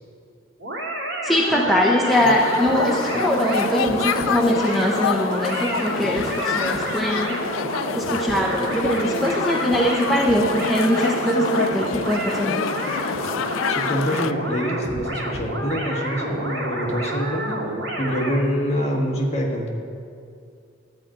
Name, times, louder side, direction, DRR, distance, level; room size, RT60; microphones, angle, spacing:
sound 1, 0.6-18.4, right 1 dB, 85° right, 2.0 m, -29 dB
voice 1, 1.2-7.5 7.9-12.6, equal, ahead, -3 dB, 0.7 m, -22 dB
sound 2, 2.1-14.3, left 7 dB, 85° left, 0.4 m, -28 dB
voice 2, 13.7-17.6 18.0-19.7, equal, 30° left, -1 dB, 1.4 m, -25 dB
12.5 x 5.1 x 8.7 m, 2.4 s
head